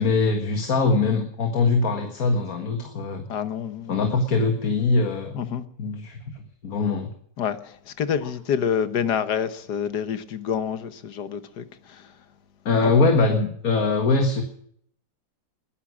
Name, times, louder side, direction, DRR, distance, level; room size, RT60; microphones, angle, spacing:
voice 1, 0.0-3.3 3.9-5.4 5.8-6.2 6.6-7.1 12.7-14.4, left 3 dB, 60° left, 2.1 m, -22 dB
voice 2, 3.3-4.1 5.3-5.6 7.4-12.1 12.7-12.9, left 8 dB, 75° left, 1.8 m, -28 dB
20.5 x 11.0 x 6.3 m
omnidirectional pair, 1.8 m